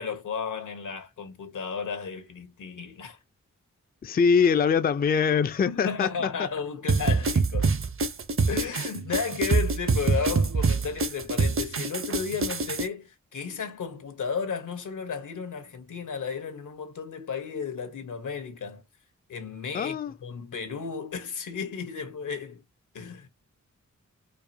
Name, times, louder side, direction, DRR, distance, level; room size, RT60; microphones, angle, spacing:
voice 1, 0.0-3.2 5.7-7.7 8.5-18.8 19.3-22.6 22.9-23.3, left 6 dB, 85° left, 1.2 m, -33 dB
voice 2, 4.0-6.1 6.4-6.5 19.7-20.1, left 6 dB, 30° left, 0.4 m, -23 dB
sound 1, 6.9-12.8, right 4 dB, 45° right, 0.7 m, -25 dB
4.7 x 2.4 x 2.7 m
cardioid pair, 65°, 30 cm